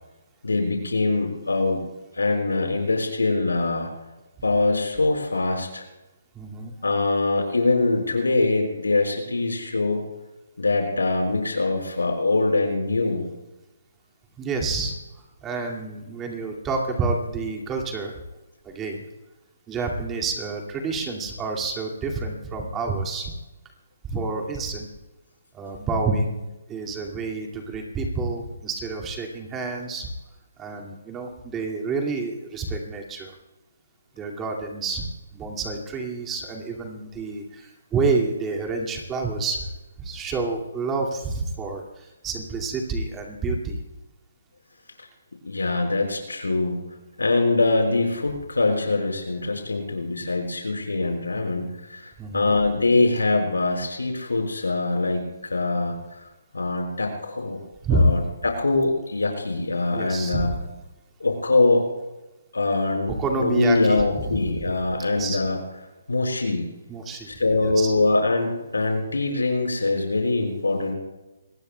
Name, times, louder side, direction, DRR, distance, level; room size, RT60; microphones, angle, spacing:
voice 1, 0.4-1.8 2.2-3.9 4.4-5.8 6.8-10.1 10.6-13.3 45.4-46.9 47.2-55.9 56.5-57.6 57.9-60.5 61.2-61.9 62.5-65.6 66.1-66.7 67.3-71.0, left 3 dB, 85° left, 3 dB, 4.8 m, -23 dB
voice 2, 6.4-6.7 14.4-14.9 15.4-18.1 18.6-19.0 19.7-23.3 24.1-24.9 25.5-30.1 30.6-33.3 34.2-35.1 35.3-39.7 40.0-43.8 52.2-52.5 57.8-58.1 59.9-60.6 63.2-64.6 65.1-65.4 66.9-67.3 67.6-67.9, right 3 dB, 15° right, 0 dB, 2.2 m, -28 dB
25.5 x 19.5 x 2.3 m, 1.0 s
figure-of-eight pair, 145°, 0 cm